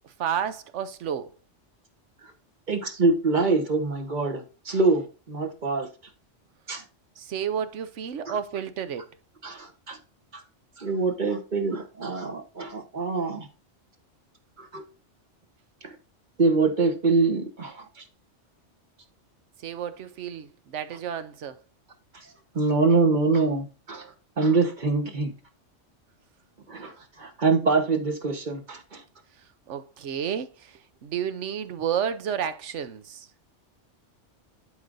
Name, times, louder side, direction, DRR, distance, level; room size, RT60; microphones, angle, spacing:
voice 1, 0.2-1.3 7.2-9.1 19.6-21.6 29.7-30.7 31.0-33.3, right 8 dB, 75° right, 1.1 m, -31 dB
voice 2, 2.7-5.9 6.7-6.8 8.3-8.4 9.4-10.0 10.8-13.5 14.6-14.8 15.8-15.9 16.4-17.8 22.5-24.1 24.4-25.3 26.7-29.0, right 3 dB, 40° right, 1.3 m, -24 dB
11.5 x 5.0 x 2.6 m
omnidirectional pair, 1.2 m